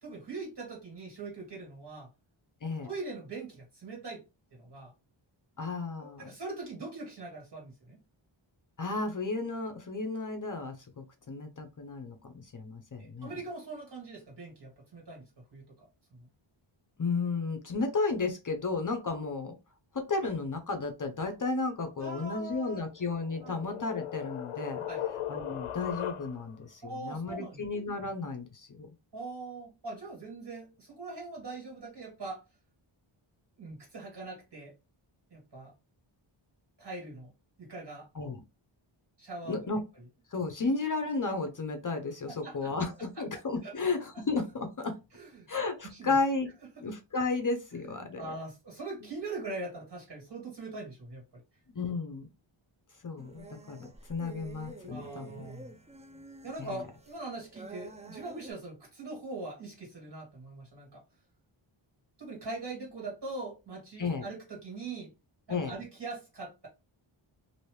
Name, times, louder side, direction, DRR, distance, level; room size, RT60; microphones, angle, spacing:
voice 1, 0.0-2.1 2.8-4.2 4.6-4.9 6.0-8.0 13.0-15.3 15.5-15.6 16.1-16.2 22.0-22.8 23.4-23.6 24.9-25.0 26.8-27.6 29.1-32.4 33.6-34.7 35.3-35.7 36.8-37.3 37.6-38.1 39.2-39.7 42.3-42.7 43.6-43.7 44.1-44.2 45.1-45.5 45.8-46.2 47.8-51.2 54.9-55.7 56.4-61.0 62.2-65.1 65.5-66.7, right 3 dB, 55° right, -1 dB, 1.9 m, -42 dB
voice 2, 5.6-6.2 8.8-13.3 17.0-19.5 19.9-24.8 25.3-28.9 38.1-38.4 39.5-39.8 40.3-45.0 45.5-46.5 46.8-48.3 51.7-52.3 53.0-55.5 56.6-56.7 64.0-64.3 65.5-65.7, left 3 dB, 40° left, 6 dB, 0.6 m, -33 dB
sound 1, 22.9-26.6, left 11 dB, 80° left, 0.6 m, -38 dB
sound 2, 53.2-58.5, right 3 dB, 15° right, 0.4 m, -49 dB
2.9 x 2.7 x 3.1 m, 0.27 s
wide cardioid pair, 110°, 50 cm